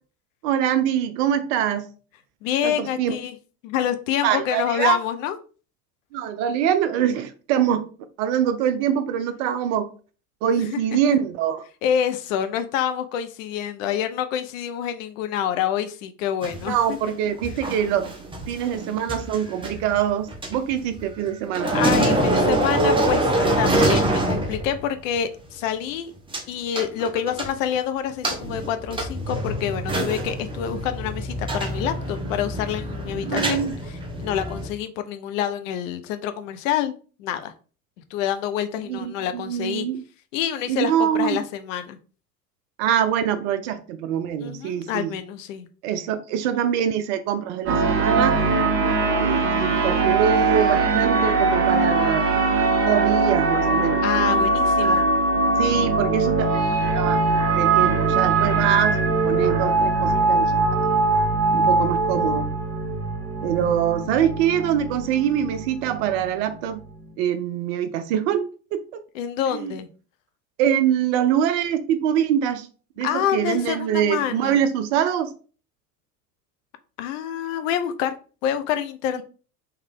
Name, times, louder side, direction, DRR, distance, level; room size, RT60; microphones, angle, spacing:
voice 1, 0.4-1.9 2.6-3.2 4.2-5.0 6.1-7.9 8.2-9.9 10.4-11.6 16.7-18.1 18.5-21.7 33.3-33.8 38.9-40.0 40.7-41.4 42.8-45.1 45.8-48.4 49.2-52.3 52.9-54.0 54.8-55.1 55.6-56.5 56.9-59.0 59.2-60.5 60.8-60.9 61.5-62.5 63.4-66.8 67.2-69.0 69.5-69.7 70.6-72.7 73.0-75.3, right 9 dB, 45° right, 0.6 m, -24 dB
voice 2, 2.4-3.4 3.6-5.4 10.5-10.8 11.8-17.0 21.7-26.1 26.5-33.6 33.9-37.5 38.1-39.9 40.3-42.0 44.4-45.7 54.0-55.1 69.1-69.9 73.0-74.6 77.0-78.1 78.4-79.2, left 9 dB, 55° left, 0.6 m, -27 dB
sound 1, 16.4-21.3 21.5-24.9 25.2-25.3 26.3-26.4 26.8-27.8 28.2-34.7, right 1 dB, 10° right, 0.8 m, -25 dB
sound 2, 47.7-67.1, right 3 dB, 25° right, 1.3 m, -21 dB
3.2 x 3.2 x 3.5 m
figure-of-eight pair, 70°, 47 cm